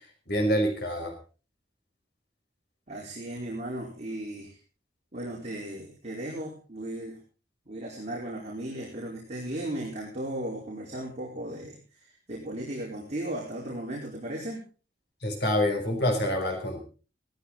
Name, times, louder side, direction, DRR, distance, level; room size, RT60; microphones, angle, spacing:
voice 1, 0.3-1.1 15.2-16.8, equal, 60° left, 2 dB, 5.4 m, -26 dB
voice 2, 2.9-4.5 5.1-7.2 7.7-11.8 12.3-14.6, right 1 dB, 40° right, -3 dB, 4.5 m, -36 dB
18.0 x 14.5 x 4.1 m, 0.36 s
head